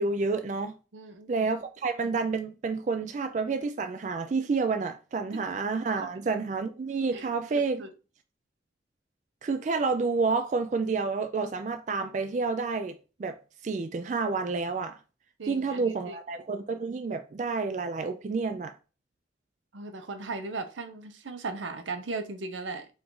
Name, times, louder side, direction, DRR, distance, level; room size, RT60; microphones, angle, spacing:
voice 1, 0.0-0.7 1.3-7.8 9.4-13.4 13.6-15.0 15.5-18.7, right 4 dB, 40° right, 0.3 m, -29 dB
voice 2, 0.9-1.3 5.3-5.4 6.0-6.2 7.1-7.9 15.4-16.2 19.7-22.9, right 3 dB, 90° right, 0.7 m, -38 dB
4.8 x 2.5 x 3.8 m
head